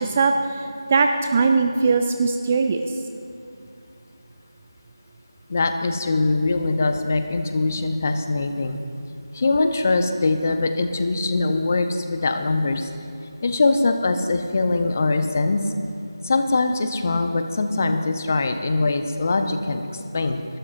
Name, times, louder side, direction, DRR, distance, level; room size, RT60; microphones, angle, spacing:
voice 1, 0.0-2.9, right 4 dB, 20° right, 6 dB, 0.3 m, -20 dB
voice 2, 5.5-8.8 9.3-12.9 13.4-15.6 16.2-20.4, left 3 dB, 35° left, 7 dB, 0.7 m, -22 dB
20.5 x 12.0 x 2.5 m, 2.5 s
figure-of-eight pair, 165°, 2 cm